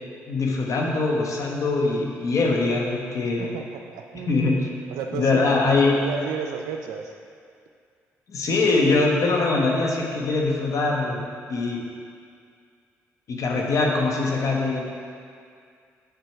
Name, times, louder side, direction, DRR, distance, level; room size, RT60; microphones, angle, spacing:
voice 1, 0.3-3.5 4.1-4.7 5.1-5.9 8.3-11.2 11.5-11.8 13.3-14.8, left 3 dB, 60° left, -1 dB, 1.1 m, -22 dB
voice 2, 3.2-4.4 4.9-7.2, right 6 dB, 80° right, 4 dB, 0.4 m, -33 dB
6.7 x 4.7 x 4.5 m, 2.2 s
hypercardioid pair, 55°, 6 cm